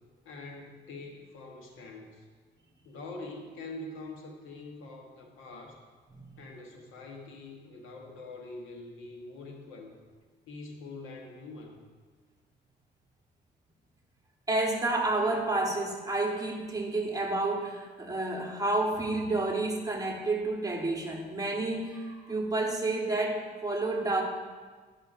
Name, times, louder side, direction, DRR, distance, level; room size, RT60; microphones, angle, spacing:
voice 1, 0.2-2.2 2.8-5.8 6.4-10.0 10.5-11.8, left 2 dB, 90° left, 2 dB, 1.0 m, -44 dB
voice 2, 14.5-24.2, right 2 dB, 20° right, 1 dB, 1.1 m, -30 dB
11.0 x 5.6 x 2.5 m, 1.5 s
cardioid pair, 90°, 20 cm